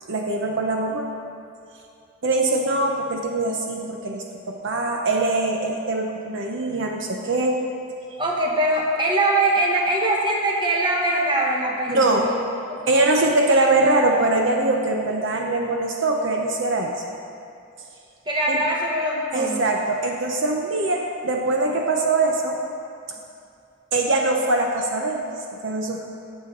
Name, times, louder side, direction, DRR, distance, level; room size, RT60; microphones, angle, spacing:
voice 1, 0.1-1.1 2.2-7.6 11.9-12.3 12.9-16.9 18.5-18.6 19.3-22.6 23.9-25.2 25.6-26.1, right 2 dB, 60° right, 1 dB, 0.8 m, -22 dB
voice 2, 8.2-12.3 12.7-13.2 18.3-19.7, right 1 dB, 20° right, -2 dB, 1.3 m, -22 dB
17.5 x 7.0 x 3.9 m, 2.5 s
head